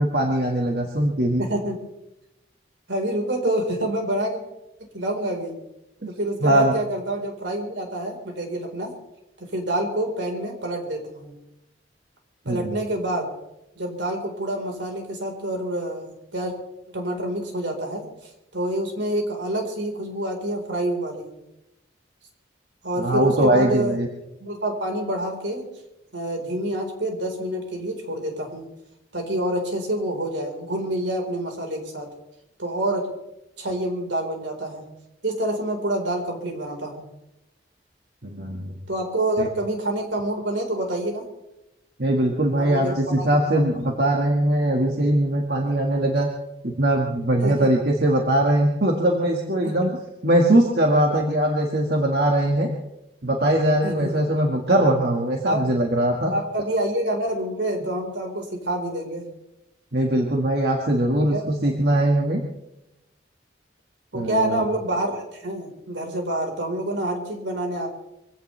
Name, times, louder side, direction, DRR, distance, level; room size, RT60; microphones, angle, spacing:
voice 1, 0.0-1.4 6.0-6.1 6.4-6.7 12.5-12.7 23.0-24.1 38.2-38.8 39.4-39.5 42.0-46.3 46.6-49.9 50.2-52.7 53.2-56.3 59.9-62.4 64.1-64.7, right 1 dB, 55° right, 0 dB, 1.8 m, -21 dB
voice 2, 1.4-1.8 2.9-4.4 4.9-5.6 6.1-8.9 9.5-11.3 12.5-13.3 13.7-16.5 16.9-21.3 22.8-24.0 24.4-25.7 26.1-28.7 29.1-32.1 32.6-33.1 33.6-34.8 35.2-37.0 38.9-41.2 42.6-43.7 47.4-47.7 49.6-49.8 53.8-54.1 55.4-55.6 56.3-59.3 61.2-61.5 64.1-67.9, right 1 dB, 80° right, 2 dB, 4.4 m, -27 dB
24.0 x 16.5 x 3.4 m, 0.89 s
head